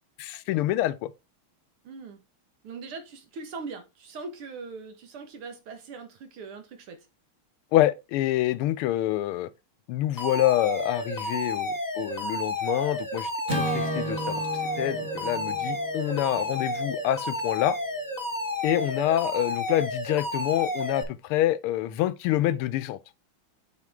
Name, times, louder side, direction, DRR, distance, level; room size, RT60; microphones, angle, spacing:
voice 1, 0.2-1.1 7.7-9.5 9.9-13.3 13.7-14.4 14.8-17.8 18.6-23.0, left 14 dB, 85° left, 1.5 m, -26 dB
voice 2, 1.8-2.2 2.6-7.1, right 4 dB, 80° right, 2.3 m, -41 dB
Alarm, 10.2-21.0, left 1 dB, 15° left, 0.6 m, -31 dB
Acoustic guitar / Strum, 13.5-17.9, right 2 dB, 25° right, 1.4 m, -35 dB
8.4 x 4.4 x 3.6 m
omnidirectional pair, 2.4 m